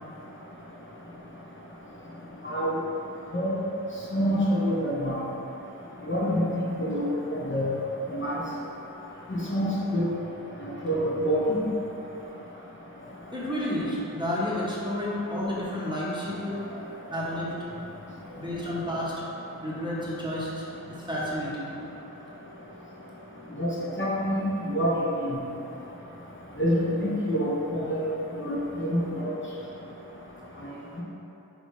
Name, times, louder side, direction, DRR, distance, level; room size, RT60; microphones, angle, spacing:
voice 1, 4.1-5.2 6.1-7.0 7.3-7.7 8.1-8.4 9.3-10.0 10.8-11.6 23.6-23.7 24.0-24.4 24.7-24.9 25.2-25.3 26.6-28.1 28.4-29.3, equal, 35° left, -6 dB, 0.7 m, -26 dB
voice 2, 13.3-16.8 17.1-17.5 18.4-19.1 19.6-20.6 21.1-21.7, left 1 dB, 15° right, -8 dB, 0.8 m, -30 dB
4.1 x 3.4 x 3.0 m, 3.0 s
wide cardioid pair, 55°, 33 cm